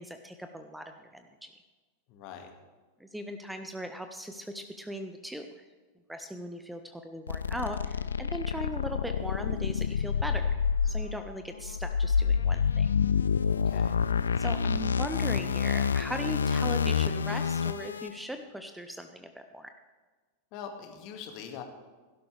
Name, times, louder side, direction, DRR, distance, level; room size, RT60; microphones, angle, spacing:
voice 1, 0.0-1.5 3.0-5.7 6.1-12.9 14.4-19.7, equal, 5° right, 7 dB, 0.8 m, -39 dB
voice 2, 2.1-2.5 13.6-14.0 20.5-21.6, left 7 dB, 45° left, 5 dB, 1.8 m, -42 dB
sound 1, 7.3-18.1, left 6 dB, 70° left, 0.4 m, -28 dB
17.0 x 12.0 x 3.3 m, 1.4 s
figure-of-eight pair, 90°, 0 cm